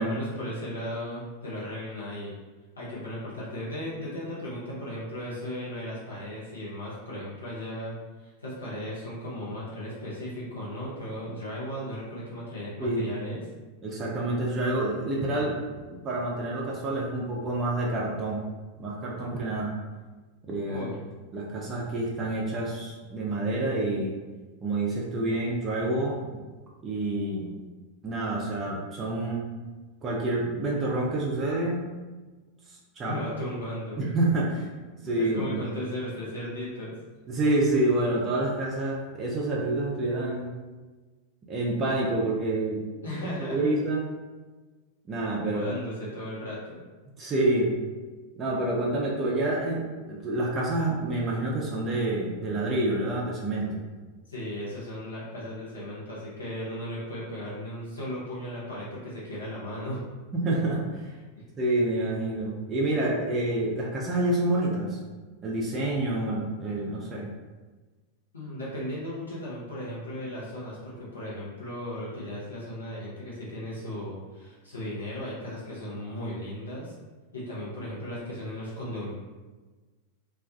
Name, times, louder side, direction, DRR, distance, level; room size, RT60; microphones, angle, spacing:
voice 1, 0.0-2.3 2.8-7.9 8.2-13.4 20.7-21.0 33.0-34.0 35.0-36.9 43.0-43.7 45.4-46.8 54.3-60.0 68.3-76.9 77.3-79.1, equal, 75° left, -8 dB, 0.7 m, -36 dB
voice 2, 12.8-13.1 13.8-15.5 15.9-18.4 18.8-19.7 20.5-20.8 21.3-24.2 24.6-26.4 26.8-27.5 28.0-29.5 30.0-31.9 32.7-33.2 34.0-34.7 35.0-35.6 37.3-40.5 41.5-42.8 43.4-44.1 45.1-45.7 47.2-47.7 48.4-53.8 60.3-61.1 61.6-65.0 65.4-67.3, right 2 dB, 25° right, -4 dB, 0.4 m, -28 dB
2.3 x 2.2 x 2.4 m, 1.3 s
figure-of-eight pair, 90°, 0 cm